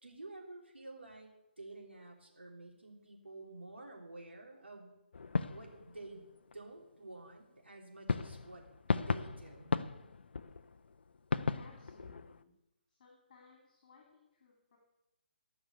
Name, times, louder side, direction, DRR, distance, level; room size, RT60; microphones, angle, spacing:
voice 1, 0.0-4.9 5.5-6.3 6.5-8.7 9.0-9.8, right 2 dB, 85° right, 0 dB, 3.6 m, -50 dB
sound 1, 5.1-6.6 8.1-12.4, left 4 dB, 65° left, 0.6 m, -37 dB
voice 2, 11.6-12.5 12.9-14.8, left 4 dB, 40° left, -1 dB, 3.3 m, -61 dB
16.0 x 6.0 x 8.3 m, 0.90 s
figure-of-eight pair, 140°, 6 cm